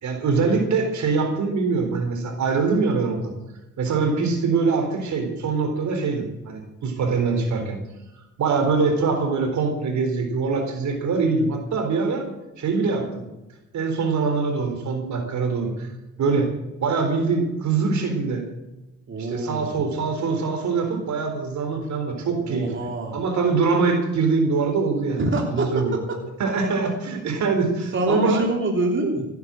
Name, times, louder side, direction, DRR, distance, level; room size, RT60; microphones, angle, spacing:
voice 1, 0.0-3.3 3.8-7.8 8.4-12.3 12.6-13.2 13.7-15.9 16.2-16.5 16.8-18.5 19.2-22.7 23.1-25.2 25.5-25.9 26.4-28.4, right 4 dB, 70° right, 5 dB, 4.0 m, -23 dB
voice 2, 19.1-19.8 22.5-23.2 25.2-26.0 27.9-29.3, right 2 dB, 40° right, 1 dB, 3.3 m, -25 dB
15.5 x 10.5 x 7.7 m, 0.98 s
cardioid pair, 90°, 30 cm